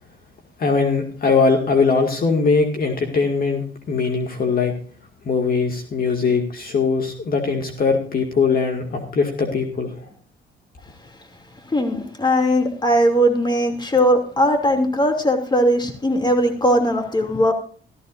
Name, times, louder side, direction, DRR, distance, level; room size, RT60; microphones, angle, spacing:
voice 1, 0.6-4.7 5.3-10.0, left 4 dB, 50° left, 3 dB, 2.1 m, -20 dB
voice 2, 11.7-17.5, equal, 20° left, 4 dB, 2.7 m, -19 dB
14.5 x 14.0 x 2.6 m, 0.43 s
cardioid pair, 90°, 20 cm